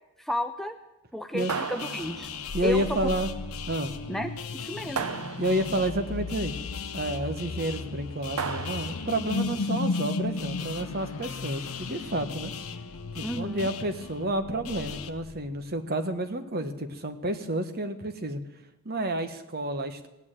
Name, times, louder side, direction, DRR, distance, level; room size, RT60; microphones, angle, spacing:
voice 1, 0.2-0.8 1.1-2.3 2.6-3.0 4.1-5.0 13.2-13.7, equal, ahead, 6 dB, 0.5 m, -32 dB
sound 1, 1.4-15.1, left 6 dB, 85° left, 1.0 m, -40 dB
sound 2, 1.5-2.6 4.9-5.9 8.4-9.2, right 6 dB, 90° right, 0.7 m, -34 dB
sound 3, 2.5-15.7, left 3 dB, 65° left, 0.5 m, -36 dB
voice 2, 2.5-3.3 3.7-3.9 5.4-6.5 6.9-12.5 13.1-18.4 18.8-20.1, right 1 dB, 45° right, 8 dB, 1.2 m, -30 dB
17.0 x 8.9 x 8.9 m, 0.95 s
head